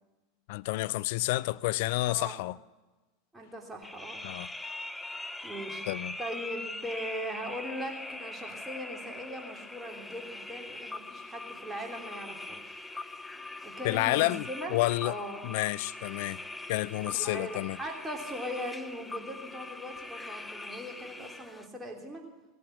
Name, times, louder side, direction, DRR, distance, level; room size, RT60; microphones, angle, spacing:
voice 1, 0.5-2.6 4.2-4.5 5.9-6.2 13.8-15.1 15.4-16.4 16.7-17.8, left 19 dB, 65° left, 0.4 m, -30 dB
voice 2, 2.0-2.5 3.3-4.2 5.4-5.8 6.2-12.8 13.6-14.8 15.0-15.5 17.1-22.2, equal, 10° right, 3.1 m, -40 dB
sound 1, 3.8-21.7, left 2 dB, 10° left, 0.7 m, -42 dB
16.5 x 8.6 x 7.9 m
hypercardioid pair, 90°, 0 cm